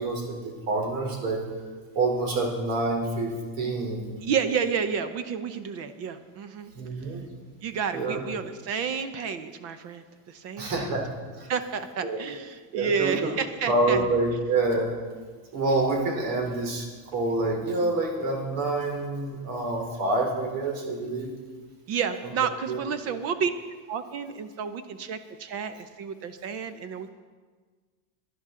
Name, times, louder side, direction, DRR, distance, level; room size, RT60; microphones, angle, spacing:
voice 1, 0.0-1.4 2.0-4.2 6.7-7.2 7.9-8.2 10.6-11.1 11.4-11.5 12.0-12.2 12.7-13.3 13.7-14.9 15.5-16.9 17.1-21.3 22.7-22.8, right 2 dB, 80° right, 1 dB, 3.6 m, -27 dB
voice 2, 4.2-6.7 7.6-10.9 11.5-14.1 21.9-23.5 23.9-27.1, right 6 dB, 40° right, 11 dB, 0.7 m, -30 dB
18.5 x 11.0 x 3.8 m, 1.5 s
cardioid pair, 170°, 41 cm